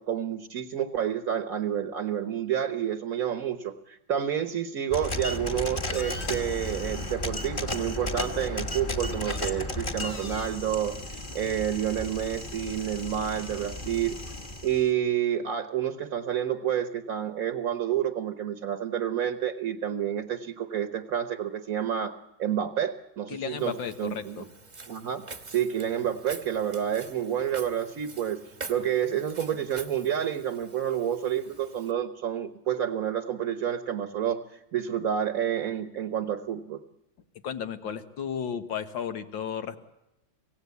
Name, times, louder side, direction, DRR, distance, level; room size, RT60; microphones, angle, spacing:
voice 1, 0.0-14.2 14.6-24.4 24.9-28.4 28.7-36.8, right 9 dB, 50° right, 10 dB, 1.4 m, -29 dB
sound 1, 4.9-14.9, left 1 dB, 30° left, 1.7 m, -34 dB
voice 2, 23.3-24.5 37.4-39.8, left 7 dB, 80° left, 9 dB, 2.1 m, -34 dB
Walk footsteps, 23.6-31.9, right 4 dB, 25° right, 1.3 m, -46 dB
25.5 x 17.0 x 8.3 m, 0.92 s
omnidirectional pair, 2.1 m